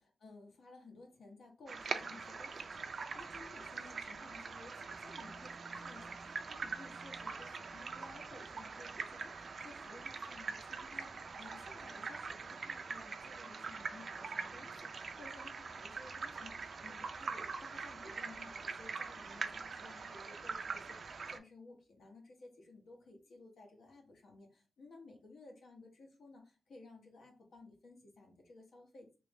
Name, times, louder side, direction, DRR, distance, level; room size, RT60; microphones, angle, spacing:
voice 1, 0.0-29.2, left 3 dB, 75° left, 2 dB, 1.0 m, -56 dB
sound 1, 1.7-21.4, right 4 dB, 50° right, 0.3 m, -43 dB
3.1 x 2.6 x 3.4 m, 0.34 s
wide cardioid pair, 180°, 0 cm